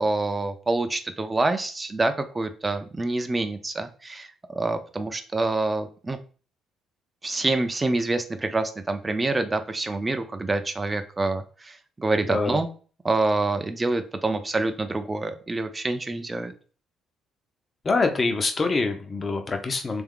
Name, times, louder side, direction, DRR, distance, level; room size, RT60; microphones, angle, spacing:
voice 1, 0.0-6.2 7.2-12.7 13.0-16.5, right 2 dB, 15° right, 7 dB, 0.5 m, -26 dB
voice 2, 12.2-12.6 17.8-20.0, left 3 dB, 25° left, 5 dB, 0.7 m, -25 dB
3.5 x 3.5 x 3.7 m, 0.39 s
cardioid pair, 130°, 0 cm